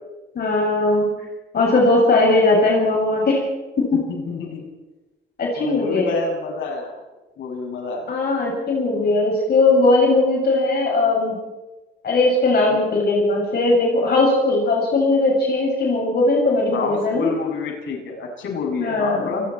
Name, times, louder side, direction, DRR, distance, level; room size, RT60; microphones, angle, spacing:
voice 1, 0.4-1.1 1.5-3.4 3.8-4.0 5.4-6.1 8.1-11.4 12.0-17.3 18.8-19.3, left 2 dB, 55° left, -2 dB, 7.3 m, -19 dB
voice 2, 3.9-4.7 5.6-7.0 7.4-8.1 12.7-12.8 16.7-19.4, left 4 dB, 75° left, 1 dB, 7.7 m, -28 dB
29.0 x 19.5 x 4.6 m, 1.1 s
cardioid pair, 90°, 20 cm